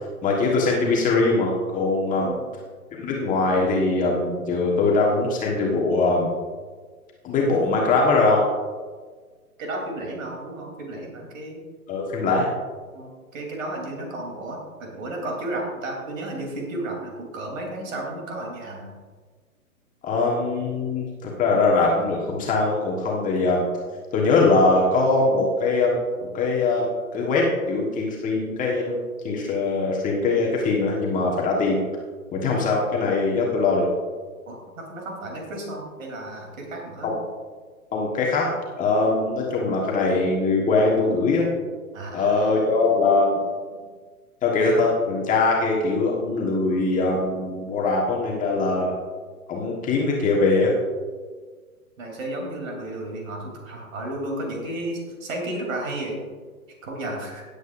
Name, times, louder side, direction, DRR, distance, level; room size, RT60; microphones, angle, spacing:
voice 1, 0.2-2.3 2.9-6.3 7.2-8.4 11.9-12.5 20.0-23.6 24.1-26.0 26.3-29.0 29.2-31.8 32.3-33.9 37.0-37.1 37.9-38.5 38.8-41.5 42.1-43.4 44.4-48.9 49.5-50.7, left 3 dB, 15° left, -2 dB, 1.5 m, -22 dB
voice 2, 2.2-2.5 9.6-11.6 12.9-18.9 34.5-37.1 41.9-42.6 43.7-43.9 52.0-56.2 56.8-57.4, right 1 dB, 60° right, 0 dB, 3.5 m, -33 dB
17.0 x 8.2 x 2.6 m, 1.5 s
hypercardioid pair, 125°, 45 cm